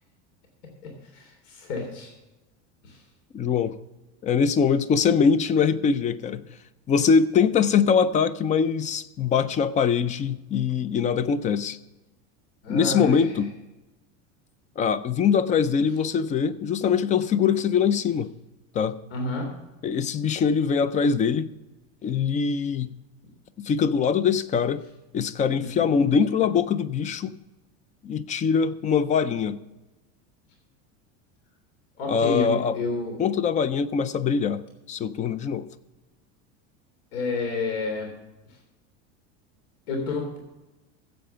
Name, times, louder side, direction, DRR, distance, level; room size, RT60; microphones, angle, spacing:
voice 1, 0.8-2.1 2.8-3.0 12.6-13.3 19.1-19.5 25.6-25.9 32.0-33.2 37.1-38.1 39.9-40.4, left 3 dB, 80° left, 2 dB, 3.5 m, -30 dB
voice 2, 3.3-3.8 4.2-6.4 6.9-11.8 12.7-13.5 14.8-18.3 18.7-19.0 19.8-21.5 22.0-22.9 23.6-24.8 25.1-27.3 28.0-29.6 32.1-32.8 33.2-34.6 34.9-35.7, left 6 dB, 20° left, 16 dB, 0.4 m, -23 dB
15.5 x 7.8 x 5.6 m, 1.0 s
supercardioid pair, 150°, 37 cm